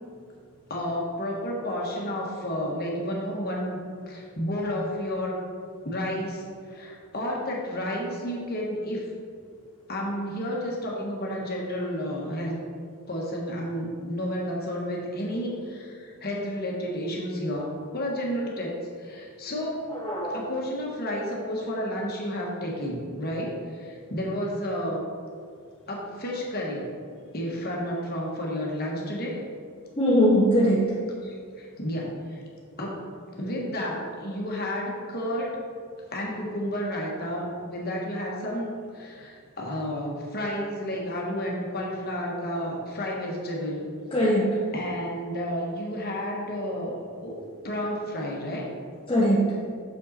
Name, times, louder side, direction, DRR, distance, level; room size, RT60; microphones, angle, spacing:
voice 1, 0.7-5.4 5.8-9.0 9.9-12.6 13.1-19.8 20.3-25.0 25.9-26.9 27.3-29.4 31.2-32.4 32.8-35.6 36.1-43.9 44.7-47.4 47.6-48.7, equal, 45° left, -2 dB, 1.3 m, -31 dB
voice 2, 19.9-20.4 30.0-30.9 44.1-44.6 49.1-49.5, equal, 25° left, -6 dB, 0.7 m, -21 dB
6.5 x 5.3 x 4.1 m, 2.2 s
head